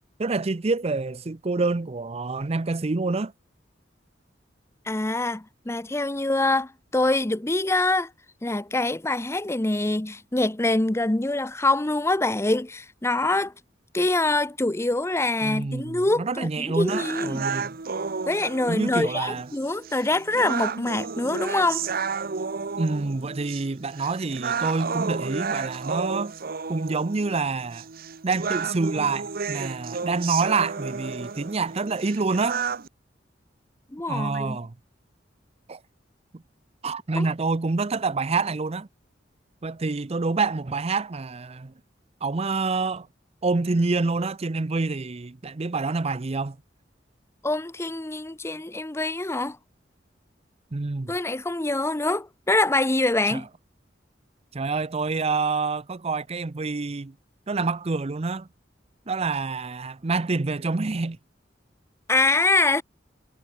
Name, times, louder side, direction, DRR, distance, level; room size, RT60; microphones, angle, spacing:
voice 1, 0.2-3.3 15.4-17.7 18.7-19.5 22.8-26.3 26.7-27.9 28.2-32.6 34.1-34.7 35.7-35.8 36.3-36.4 36.8-38.9 39.6-41.7 42.2-43.1 43.4-46.6 50.7-51.1 53.3-53.4 54.5-57.1 57.5-58.5 59.1-61.2, right 3 dB, 35° right, 0.6 m, -27 dB
voice 2, 4.9-8.1 8.4-13.5 13.9-17.4 18.3-21.9 33.9-34.6 37.1-37.3 47.4-49.6 51.1-53.5 62.1-62.8, left 2 dB, 15° left, 0.8 m, -25 dB
sound 1, 16.9-32.9, right 5 dB, 55° right, 0.9 m, -32 dB
head